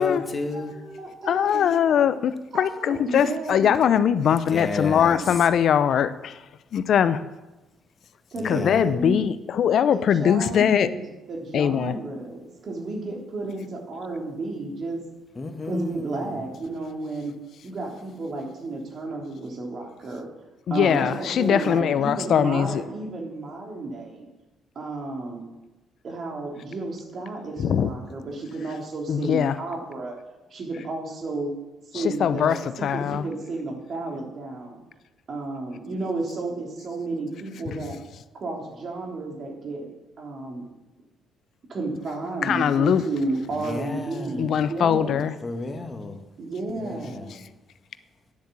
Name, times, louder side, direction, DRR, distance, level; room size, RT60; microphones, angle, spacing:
voice 1, 0.0-0.7 4.5-5.2 8.3-8.9 15.3-16.4 43.5-44.5 45.4-46.2 46.8-47.4, left 3 dB, 35° left, 1.7 m, -32 dB
voice 2, 0.5-2.1 2.5-3.8 8.3-9.3 9.9-15.0 15.6-17.3 17.6-20.3 20.7-24.3 24.7-25.4 26.0-30.2 30.5-31.5 31.9-34.8 35.3-38.0 38.3-39.9 40.2-40.7 41.7-45.3 46.4-47.3, right 2 dB, 55° right, 3.2 m, -32 dB
voice 3, 1.3-6.4 6.7-7.2 8.4-10.9 11.5-12.0 20.7-22.8 27.6-27.9 29.1-29.6 31.9-33.3 37.7-37.8 42.4-43.0 44.4-45.3, left 8 dB, 65° left, 0.6 m, -21 dB
9.8 x 7.4 x 7.4 m
supercardioid pair, 60°, 0 cm